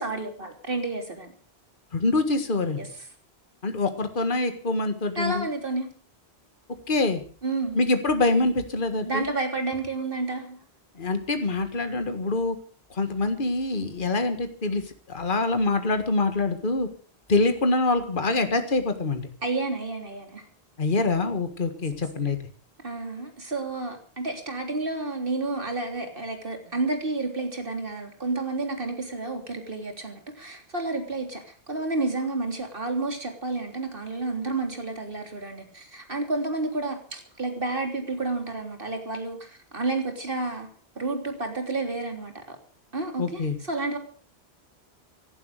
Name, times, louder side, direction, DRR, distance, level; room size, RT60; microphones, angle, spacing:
voice 1, 0.0-1.3 2.8-2.9 5.2-5.9 7.4-7.8 9.0-10.6 19.4-20.4 22.8-40.7 41.0-42.6 42.9-43.4 43.7-44.0, right 3 dB, 55° right, 5 dB, 3.5 m, -30 dB
voice 2, 1.9-2.8 3.6-5.5 6.9-7.2 7.8-9.3 11.0-12.6 12.9-16.9 17.3-19.3 20.8-22.4 43.2-43.6, left 3 dB, 50° left, 8 dB, 1.8 m, -25 dB
17.5 x 11.5 x 6.5 m, 0.42 s
omnidirectional pair, 1.1 m